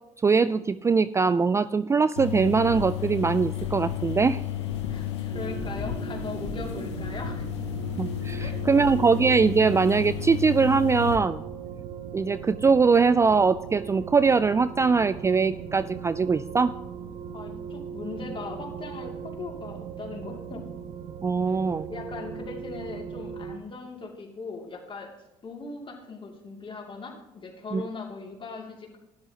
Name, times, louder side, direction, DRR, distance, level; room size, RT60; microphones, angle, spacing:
voice 1, 0.2-4.4 8.0-11.4 12.1-16.7 21.2-21.9 27.7-27.9, right 5 dB, 20° right, 15 dB, 0.3 m, -22 dB
sound 1, 2.2-11.2, left 11 dB, 85° left, 1.2 m, -32 dB
voice 2, 4.8-7.4 8.4-8.8 17.3-20.6 21.5-21.6 21.9-25.1 25.4-29.0, left 4 dB, 35° left, 1 dB, 2.8 m, -39 dB
sound 2, 5.3-23.6, right 7 dB, 60° right, 0.9 m, -39 dB
12.5 x 10.5 x 3.0 m, 0.99 s
hypercardioid pair, 60°, 14 cm